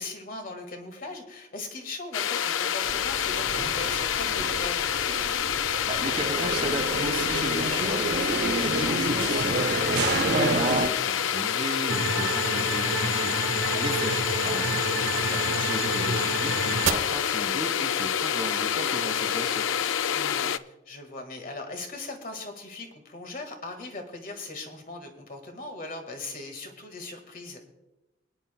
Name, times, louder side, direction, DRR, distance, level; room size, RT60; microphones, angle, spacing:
voice 1, 0.0-4.9 13.7-14.1 20.1-20.5 20.9-27.6, left 2 dB, 45° left, 5 dB, 1.7 m, -39 dB
sound 1, 2.1-20.6, left 9 dB, 80° left, 0.4 m, -27 dB
sound 2, 2.8-10.9, right 3 dB, 55° right, 0.7 m, -30 dB
voice 2, 5.9-13.3 13.8-14.8 15.2-19.7, right 1 dB, 30° right, 6 dB, 1.3 m, -35 dB
sound 3, 11.9-16.9, right 5 dB, 80° right, 0.9 m, -30 dB
23.5 x 10.0 x 2.2 m, 1.0 s
head